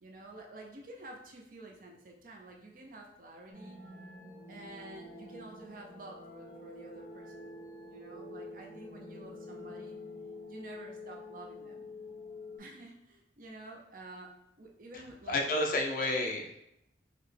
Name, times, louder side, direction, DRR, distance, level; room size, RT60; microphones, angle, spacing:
voice 1, 0.0-3.8 4.5-7.5 7.9-10.0 10.5-11.9 12.6-14.3 14.6-15.4 15.7-16.0, right 2 dB, 45° right, 0 dB, 0.5 m, -50 dB
sound 1, 3.5-12.6, left 2 dB, 15° right, 1.1 m, -47 dB
voice 2, 15.3-16.6, left 2 dB, 45° left, 2 dB, 0.4 m, -30 dB
4.0 x 2.1 x 3.2 m, 0.83 s
head